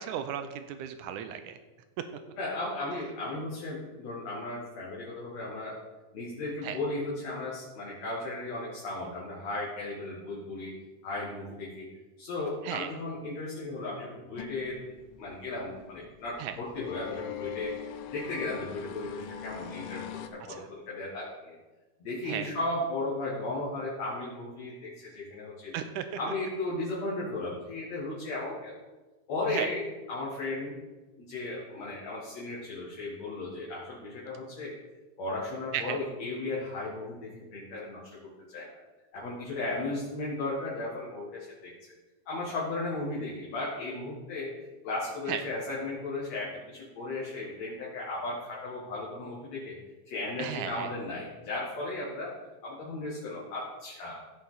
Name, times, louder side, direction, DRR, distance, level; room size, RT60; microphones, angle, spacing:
voice 1, 0.0-1.6 2.0-2.1 6.6-6.8 12.6-12.9 16.4-16.6 20.5-20.7 22.2-22.5 25.7-26.1 29.5-29.7 35.7-36.0 45.3-45.4 50.4-50.9, right 9 dB, 80° right, 9 dB, 1.9 m, -35 dB
voice 2, 2.4-5.8 6.1-10.7 11.0-11.9 12.2-14.8 15.2-17.7 18.1-21.5 22.0-25.7 26.2-28.7 29.3-30.8 31.3-34.7 35.2-38.7 39.1-41.7 42.3-44.5 44.8-49.8 50.1-52.3 52.6-54.2, left 2 dB, 55° left, -6 dB, 2.8 m, -35 dB
sound 1, 14.4-20.3, left 10 dB, 80° left, 2.1 m, -42 dB
15.5 x 5.6 x 3.9 m, 1.2 s
omnidirectional pair, 4.0 m